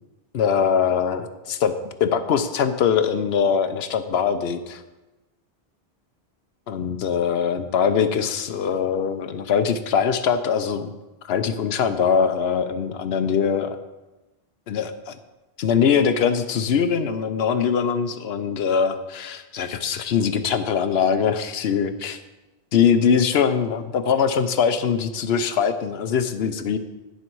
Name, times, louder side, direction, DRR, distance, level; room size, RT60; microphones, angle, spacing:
voice 1, 0.3-1.7 2.0-4.8 6.7-10.9 11.2-13.8 14.7-15.2 15.6-22.2 22.7-26.8, left 7 dB, 75° left, 10 dB, 0.9 m, -22 dB
10.5 x 7.0 x 4.6 m, 1.1 s
omnidirectional pair, 1.1 m